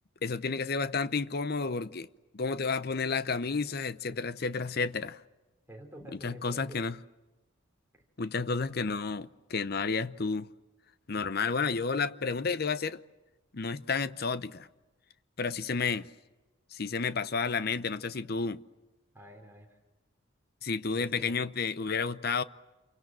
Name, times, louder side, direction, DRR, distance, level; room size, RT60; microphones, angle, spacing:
voice 1, 0.2-2.1 2.3-5.2 6.2-7.0 8.2-10.5 11.1-13.0 13.5-14.7 15.4-16.1 16.7-18.6 20.6-22.4, left 4 dB, 50° left, 0.8 m, -31 dB
voice 2, 5.7-6.8 19.1-19.8 20.9-21.4, equal, 10° right, 3.7 m, -48 dB
28.0 x 23.5 x 7.6 m
head